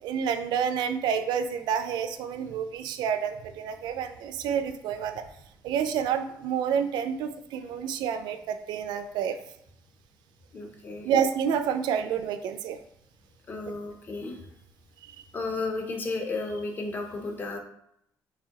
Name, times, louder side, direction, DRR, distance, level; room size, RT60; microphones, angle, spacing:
voice 1, 0.0-5.2 5.6-9.4 11.0-12.8, right 7 dB, 90° right, 9 dB, 0.4 m, -29 dB
voice 2, 10.5-11.1 13.5-14.4 15.3-17.6, left 3 dB, 25° left, 3 dB, 0.6 m, -33 dB
4.7 x 3.4 x 2.9 m, 0.75 s
cardioid pair, 180°, 7 cm